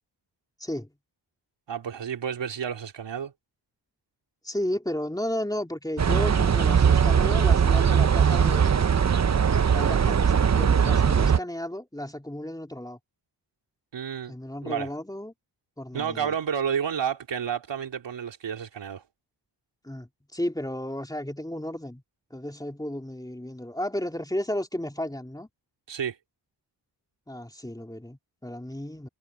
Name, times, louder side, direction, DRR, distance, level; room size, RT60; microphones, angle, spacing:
voice 1, 0.6-0.9 4.4-8.9 9.7-13.0 14.3-15.3 15.8-16.3 19.8-22.0 22.3-25.5 27.3-29.1, left 1 dB, 10° left, 3.2 m, -33 dB
voice 2, 1.7-3.3 13.9-14.3 14.6-14.9 15.9-19.0 25.9-26.2, right 8 dB, 80° right, 3.4 m, -30 dB
sound 1, 6.0-11.4, right 7 dB, 40° right, 0.8 m, -20 dB
cardioid pair, 65°, 43 cm